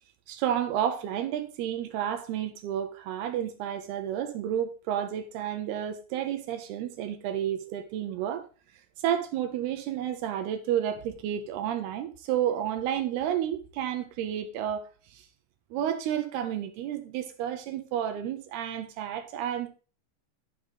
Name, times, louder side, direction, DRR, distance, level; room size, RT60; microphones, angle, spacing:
voice 1, 0.3-8.4 9.0-15.3 15.7-19.7, right 10 dB, 80° right, 2.3 m, -31 dB
10.5 x 6.3 x 4.0 m
omnidirectional pair, 5.5 m